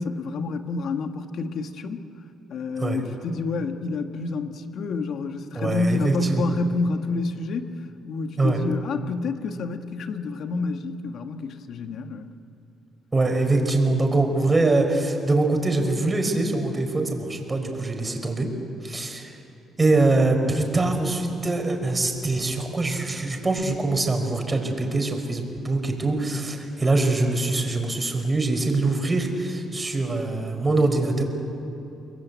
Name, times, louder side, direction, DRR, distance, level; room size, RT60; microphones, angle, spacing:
voice 1, 0.0-2.0 2.5-12.3, left 3 dB, 65° left, 7 dB, 1.6 m, -29 dB
voice 2, 5.5-6.4 8.4-8.6 13.1-18.5 18.8-19.3 19.8-31.2, right 2 dB, 20° right, 4 dB, 5.1 m, -23 dB
29.5 x 21.5 x 8.4 m, 2.9 s
cardioid pair, 90°, 0 cm